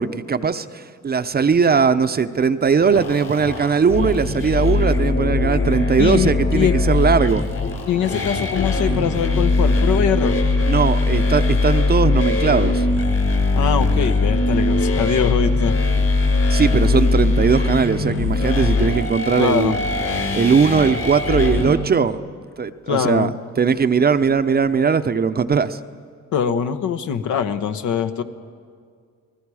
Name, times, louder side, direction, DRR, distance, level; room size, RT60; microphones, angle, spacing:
voice 1, 0.0-7.5 10.7-12.9 16.5-19.7 20.3-22.2 22.6-25.8, right 6 dB, 30° right, 11 dB, 0.7 m, -19 dB
sound 1, 2.8-21.7, left 2 dB, 55° left, 4.5 m, -20 dB
voice 2, 6.0-6.7 7.9-10.4 13.5-15.8 19.4-19.8 22.9-23.3 26.3-28.2, left 8 dB, 75° left, 8 dB, 1.1 m, -22 dB
29.0 x 19.5 x 4.9 m, 2.1 s
cardioid pair, 90°, 30 cm